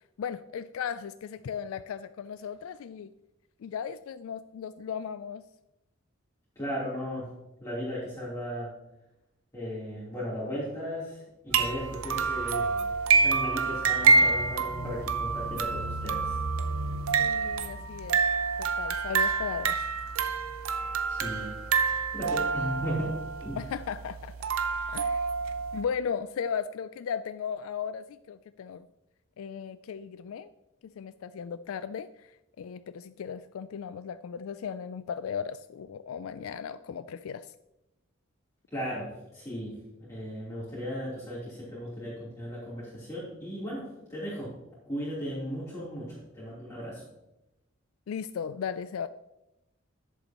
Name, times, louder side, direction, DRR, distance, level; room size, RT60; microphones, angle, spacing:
voice 1, 0.0-3.1 3.6-5.4 17.2-18.2 18.6-19.8 23.6-24.3 24.9-25.2 25.7-28.9 29.4-30.5 30.8-37.5 48.1-49.1, left 7 dB, 85° left, 13 dB, 0.3 m, -36 dB
voice 2, 6.5-7.3 7.6-8.7 9.5-12.7 13.1-16.3 21.1-21.5 22.1-23.1 23.4-23.6 38.7-39.1 39.3-39.7 40.1-44.5 44.9-47.0, equal, 15° left, -10 dB, 3.3 m, -36 dB
sound 1, 11.5-25.8, right 4 dB, 90° right, 0.7 m, -27 dB
11.0 x 8.1 x 2.9 m, 0.92 s
head